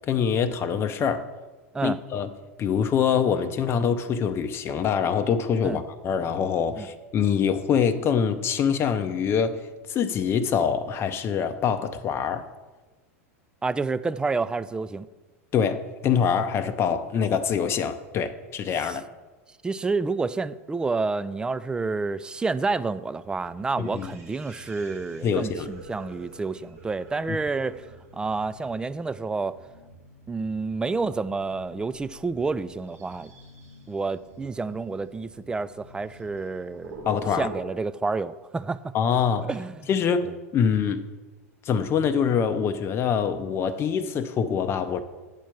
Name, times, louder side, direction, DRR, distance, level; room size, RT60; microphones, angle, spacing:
voice 1, 0.1-1.3 1.8-2.3 2.6-12.5 15.5-19.0 23.8-24.1 25.2-25.7 27.3-27.4 37.1-37.5 38.9-39.5 39.9-41.0 41.7-45.0, left 7 dB, 30° left, 0.6 m, -25 dB
voice 2, 13.6-15.1 18.8-19.0 19.6-27.9 28.1-29.6 30.3-33.3 33.9-37.1 37.4-38.9 39.4-39.8 40.2-40.3, right 4 dB, 10° right, 0.3 m, -29 dB
sound 1, 23.2-37.6, right 2 dB, 80° right, 1.7 m, -46 dB
8.2 x 4.4 x 7.0 m
hypercardioid pair, 90°, 8 cm